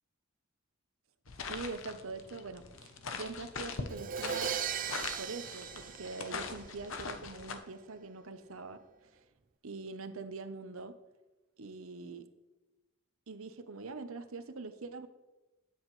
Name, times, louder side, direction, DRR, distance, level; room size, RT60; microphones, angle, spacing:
sound 1, 1.3-7.6, left 4 dB, 65° left, 0.9 m, -42 dB
voice 1, 1.5-4.6 5.2-8.8 9.6-10.9 11.6-12.3 13.3-15.1, right 3 dB, 70° right, 10 dB, 0.8 m, -43 dB
Crash cymbal, 3.9-6.8, right 8 dB, 40° right, 0.5 m, -38 dB
12.5 x 9.6 x 3.2 m, 1.1 s
head